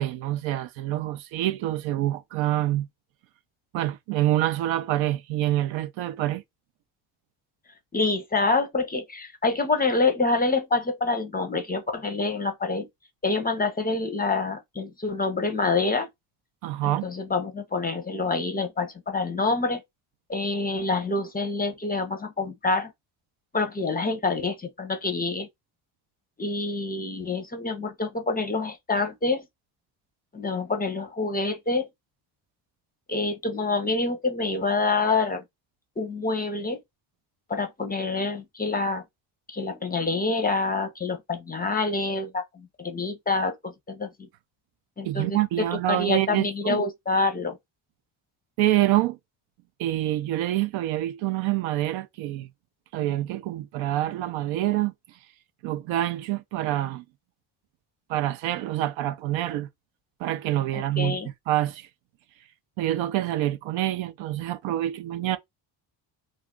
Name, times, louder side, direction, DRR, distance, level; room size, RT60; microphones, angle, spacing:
voice 1, 0.0-2.9 3.7-6.4 16.6-17.1 45.0-46.8 48.6-49.2 49.8-52.5 52.9-54.9 55.6-57.0 58.1-59.7 60.2-61.2 61.5-61.9 62.8-65.4, right 14 dB, 70° right, 0.6 m, -26 dB
voice 2, 7.9-12.9 13.2-16.1 16.8-19.8 20.3-22.9 23.5-25.5 26.4-29.4 30.3-31.9 33.1-35.4 36.0-36.8 37.5-39.0 39.5-44.3 45.0-45.4 45.9-47.6 60.7-61.3, left 3 dB, 20° left, 0.5 m, -27 dB
2.4 x 2.3 x 3.6 m
supercardioid pair, 90°, 49 cm